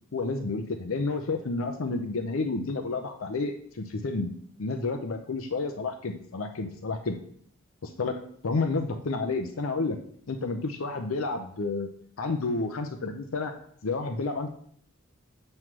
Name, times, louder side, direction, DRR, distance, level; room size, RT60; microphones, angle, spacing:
voice 1, 0.1-4.3 4.6-7.2 7.8-10.0 10.3-11.9 12.2-13.5 13.8-14.5, left 3 dB, 70° left, 6 dB, 0.6 m, -30 dB
7.4 x 3.2 x 6.0 m, 0.62 s
head